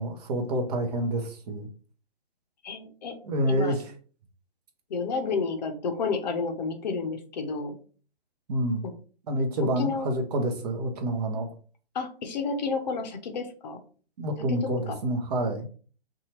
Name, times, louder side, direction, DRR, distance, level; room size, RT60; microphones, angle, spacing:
voice 1, 0.0-1.7 3.2-3.8 8.5-8.8 9.3-11.5 14.2-15.7, right 1 dB, 40° right, 4 dB, 0.7 m, -28 dB
voice 2, 2.6-3.1 3.5-3.8 4.9-7.8 9.8-10.1 11.9-13.8 14.5-15.0, left 4 dB, 45° left, 6 dB, 0.6 m, -30 dB
2.7 x 2.3 x 2.9 m, 0.41 s
figure-of-eight pair, 130°, 31 cm